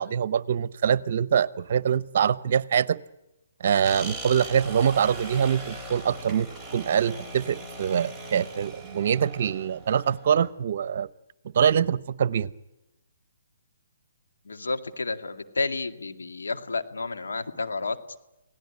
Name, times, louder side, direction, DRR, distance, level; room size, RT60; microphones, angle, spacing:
voice 1, 0.0-3.0 3.6-11.1 11.5-12.5, right 8 dB, 55° right, 19 dB, 0.9 m, -24 dB
sound 1, 3.8-10.5, right 2 dB, 5° left, 3.9 m, -40 dB
voice 2, 14.4-18.0, left 3 dB, 85° left, 7 dB, 2.2 m, -31 dB
28.5 x 18.0 x 9.8 m, 0.96 s
hypercardioid pair, 145°, 0 cm